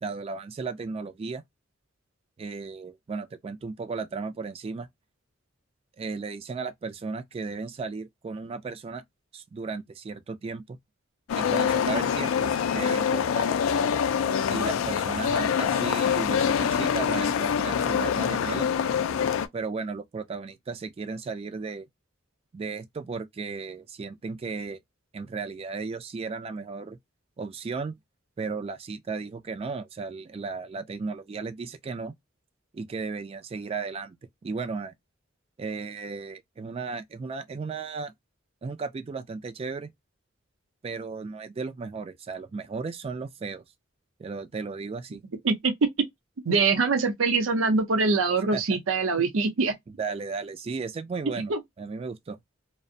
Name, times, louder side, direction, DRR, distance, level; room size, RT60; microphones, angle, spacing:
voice 1, 0.0-1.4 2.4-4.9 6.0-9.0 9.3-10.8 11.4-13.5 14.5-18.7 19.5-21.9 22.5-24.8 25.1-27.0 27.4-27.9 28.4-32.1 32.7-34.2 34.4-34.9 35.6-38.1 38.6-39.9 40.8-43.6 44.2-45.2 48.5-48.6 50.0-51.5 51.8-52.4, right 4 dB, 30° right, 0.3 m, -35 dB
sound 1, 11.3-19.5, left 7 dB, 80° left, 0.3 m, -25 dB
voice 2, 45.4-45.9 46.4-49.7 51.5-51.6, right 4 dB, 85° right, 0.6 m, -23 dB
2.5 x 2.0 x 2.6 m
head